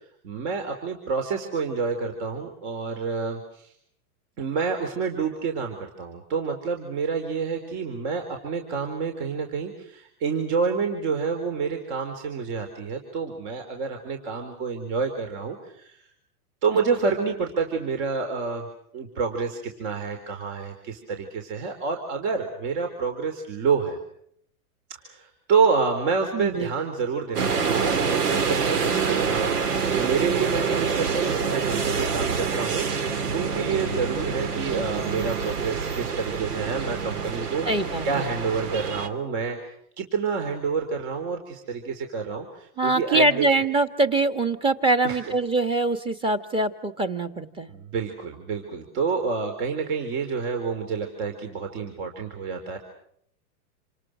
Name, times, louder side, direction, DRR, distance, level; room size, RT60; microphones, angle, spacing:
voice 1, 0.2-3.7 4.4-16.0 16.6-18.7 18.9-24.0 25.0-37.7 38.0-39.6 40.0-43.5 45.0-45.3 47.7-52.8, right 5 dB, 45° right, 5 dB, 4.4 m, -28 dB
voice 2, 26.3-26.7 37.6-38.3 42.8-47.7, right 2 dB, 10° right, 10 dB, 1.5 m, -23 dB
sound 1, 27.3-39.1, right 6 dB, 85° right, 2.8 m, -26 dB
28.5 x 27.5 x 6.3 m, 0.68 s
supercardioid pair, 155°, 45 cm